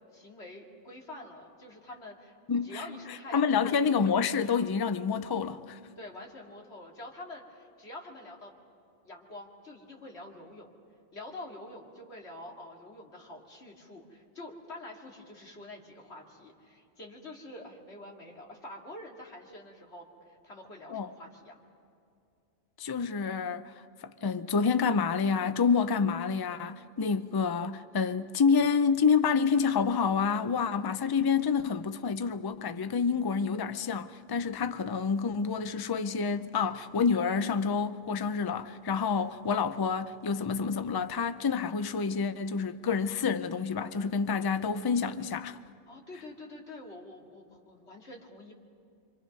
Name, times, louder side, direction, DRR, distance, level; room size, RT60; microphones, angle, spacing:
voice 1, 0.1-2.4 2.6-4.2 6.0-8.5 9.0-10.7 11.1-21.6 45.9-48.5, left 1 dB, 60° left, 2.9 m, -46 dB
voice 2, 2.5-2.8 3.3-5.8 20.9-21.1 22.8-23.7 24.0-45.6, left 5 dB, 30° left, 0.4 m, -28 dB
27.0 x 25.5 x 5.4 m
omnidirectional pair, 1.3 m